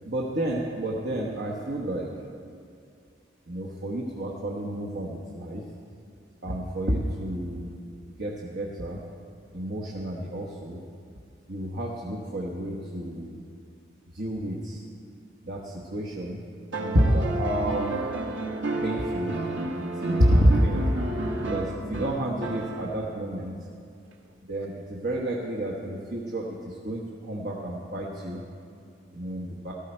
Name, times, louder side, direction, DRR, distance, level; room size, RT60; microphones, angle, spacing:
voice 1, 0.0-2.1 3.5-5.6 6.4-7.7 8.2-9.0 9.5-10.8 11.5-13.4 14.1-14.9 15.4-16.4 16.8-18.0 18.8-19.4 19.7-20.9 21.4-23.5 24.5-28.4 29.1-29.7, equal, 60° right, -3 dB, 1.2 m, -29 dB
sound 1, 16.7-23.2 24.6-24.7, right 2 dB, 85° right, 1.3 m, -31 dB
14.5 x 13.0 x 4.5 m, 2.4 s
head